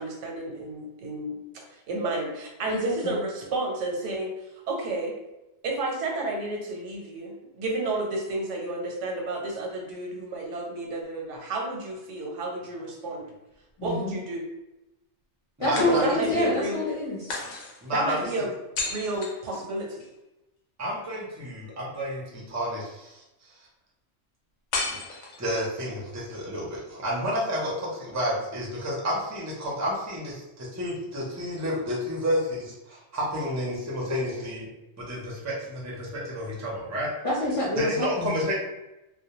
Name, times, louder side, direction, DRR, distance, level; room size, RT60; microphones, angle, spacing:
voice 1, 0.0-4.3 4.7-5.1 5.6-13.2 13.8-14.4 15.8-16.8 17.9-18.6 18.8-20.1, right 2 dB, 90° right, 0 dB, 1.0 m, -31 dB
voice 2, 2.6-3.2 13.8-14.1 15.6-17.3 37.2-38.5, left 1 dB, 40° left, -7 dB, 0.5 m, -27 dB
sound 1, 12.7-13.7 15.8-16.5 17.3-20.1 24.7-25.8, left 3 dB, 85° left, 0.9 m, -35 dB
voice 3, 15.7-16.1 17.8-18.2 20.8-23.2 25.4-34.7 35.0-37.1 37.8-38.5, equal, 20° right, -5 dB, 0.4 m, -30 dB
2.2 x 2.1 x 2.8 m, 0.95 s
omnidirectional pair, 1.2 m